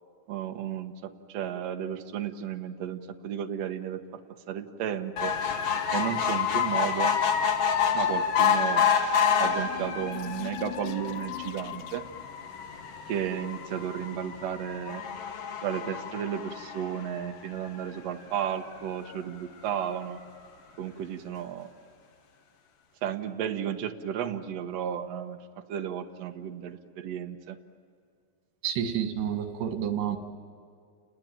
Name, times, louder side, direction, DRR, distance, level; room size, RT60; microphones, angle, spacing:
voice 1, 0.3-4.2 4.5-5.3 5.9-7.1 7.9-8.9 9.4-12.1 13.1-15.0 15.6-20.2 20.8-21.7 23.0-25.4 25.7-27.6, right 9 dB, 65° right, 5 dB, 1.7 m, -33 dB
sound 1, 5.2-17.8 18.3-18.4 18.7-18.8 19.1-19.2, left 7 dB, 55° left, 1.7 m, -28 dB
sound 2, 9.1-12.3, left 12 dB, 75° left, 2.0 m, -42 dB
voice 2, 28.6-30.2, right 9 dB, 90° right, 6 dB, 3.9 m, -29 dB
30.0 x 20.0 x 9.2 m, 2.3 s
omnidirectional pair, 4.6 m